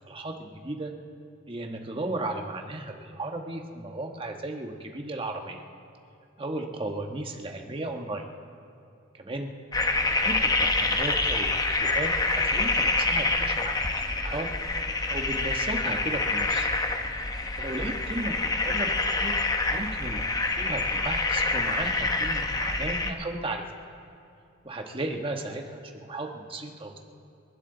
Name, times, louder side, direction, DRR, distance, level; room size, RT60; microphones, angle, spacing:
voice 1, 0.1-0.9 1.5-5.6 6.4-8.2 9.2-9.5 10.0-13.8 14.1-14.5 15.1-16.7 17.5-18.3 18.6-19.4 19.6-20.2 20.6-23.6 24.6-27.0, right 2 dB, 25° right, 3 dB, 1.3 m, -35 dB
sound 1, 9.7-23.1, left 3 dB, 20° left, 0.8 m, -26 dB
28.0 x 12.0 x 3.9 m, 2.4 s
head